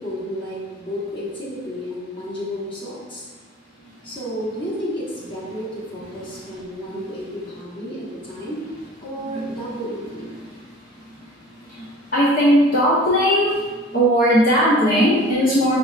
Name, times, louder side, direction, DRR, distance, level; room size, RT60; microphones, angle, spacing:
voice 1, 0.0-3.3 4.0-8.7 9.0-10.3, equal, 30° left, -7 dB, 1.1 m, -31 dB
voice 2, 12.1-13.5 13.9-15.8, equal, 50° left, -8 dB, 0.7 m, -17 dB
5.1 x 3.2 x 2.4 m, 1.3 s
head